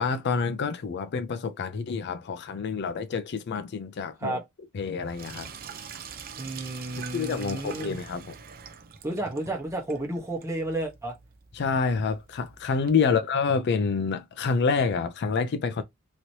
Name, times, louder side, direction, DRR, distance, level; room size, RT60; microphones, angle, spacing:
voice 1, 0.0-4.4 4.7-5.5 7.1-8.3 11.5-15.8, left 5 dB, 50° left, 0.4 m, -27 dB
Sink (filling or washing), 5.1-12.9, right 7 dB, 45° right, 0.5 m, -44 dB
voice 2, 6.4-8.0 9.0-11.1 13.0-13.2, right 2 dB, 15° right, 1.0 m, -32 dB
3.0 x 2.9 x 2.7 m
head